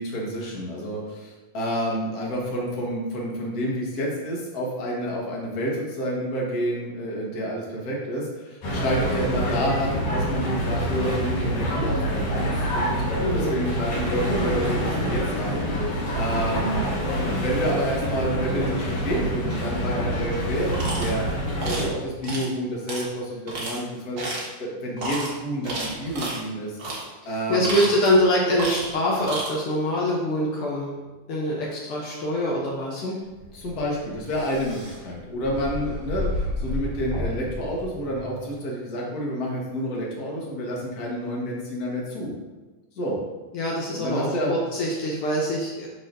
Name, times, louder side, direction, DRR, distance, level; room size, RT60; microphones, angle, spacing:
voice 1, 0.0-16.8 17.2-21.2 21.6-24.3 24.6-26.8 27.2-27.8 33.0-33.2 33.5-42.3 43.0-43.2 43.9-44.5, equal, 45° left, -3 dB, 1.2 m, -29 dB
sound 1, 8.6-21.9, equal, 70° left, 3.2 m, -26 dB
voice 2, 13.2-13.6 27.2-30.9 31.3-33.0 43.5-45.9, equal, 85° left, -3 dB, 1.2 m, -24 dB
sound 2, 20.7-21.1 21.6-21.9 22.2-22.5 22.9-23.0 23.5-23.8 24.2-24.5 25.0-25.3 25.6-26.4 26.8-27.0 27.5-28.2 28.6-28.9 29.2-29.5, right 2 dB, 45° right, 1.7 m, -31 dB
sound 3, 33.3-38.5, left 1 dB, 80° right, 3.6 m, -32 dB
11.5 x 4.1 x 2.6 m, 1.2 s
omnidirectional pair, 3.6 m